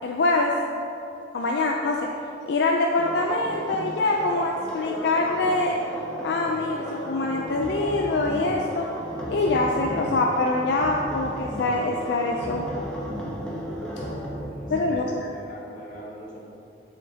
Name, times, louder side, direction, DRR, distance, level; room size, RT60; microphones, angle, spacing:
voice 1, 0.0-0.5 1.3-2.1 2.5-5.8 6.2-8.9 9.3-12.9 14.7-15.3, left 2 dB, 70° left, 1 dB, 0.4 m, -24 dB
sound 1, 3.0-14.3, equal, 5° left, 0.8 m, -36 dB
sound 2, 7.5-8.7 9.0-10.3 10.6-11.9 12.2-15.0, equal, 25° right, 1.2 m, -37 dB
voice 2, 14.0-16.5, equal, 45° left, -4 dB, 1.1 m, -42 dB
7.3 x 5.8 x 2.8 m, 2.8 s
head